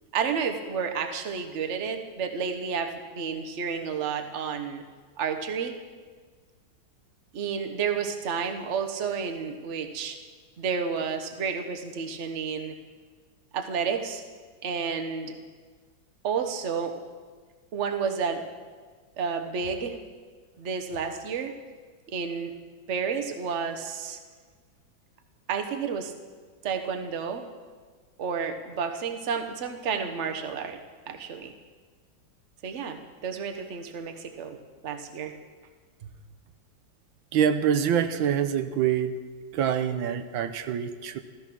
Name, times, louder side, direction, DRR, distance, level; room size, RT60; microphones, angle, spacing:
voice 1, 0.1-4.8 5.2-5.8 7.3-10.2 10.6-12.7 13.5-14.2 14.6-15.4 16.2-17.0 17.7-18.4 19.2-20.0 20.6-21.5 22.1-22.5 22.9-24.2 25.5-26.1 26.6-27.4 28.2-30.8 31.1-31.5 32.6-34.6 34.8-35.3 36.0-36.1, right 6 dB, 45° right, 6 dB, 1.2 m, -31 dB
voice 2, 37.3-39.2 39.5-41.2, right 8 dB, 85° right, 9 dB, 1.5 m, -25 dB
14.5 x 14.5 x 6.1 m, 1.5 s
omnidirectional pair, 2.1 m